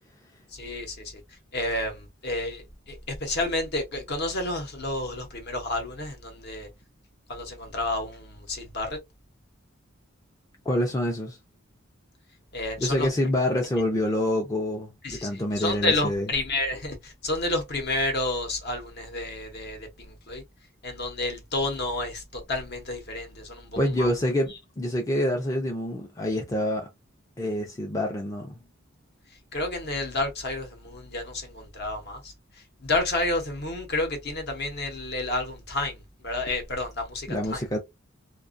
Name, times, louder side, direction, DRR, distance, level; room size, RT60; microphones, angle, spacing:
voice 1, 0.5-1.0 1.5-6.7 7.3-9.0 12.5-13.1 15.0-20.4 20.8-24.1 29.5-32.3 32.8-37.6, left 2 dB, 50° left, 0.8 m, -30 dB
voice 2, 10.7-11.4 12.8-16.3 23.8-26.9 27.4-28.6 37.3-37.8, left 1 dB, 15° left, 0.4 m, -27 dB
2.4 x 2.3 x 2.5 m
head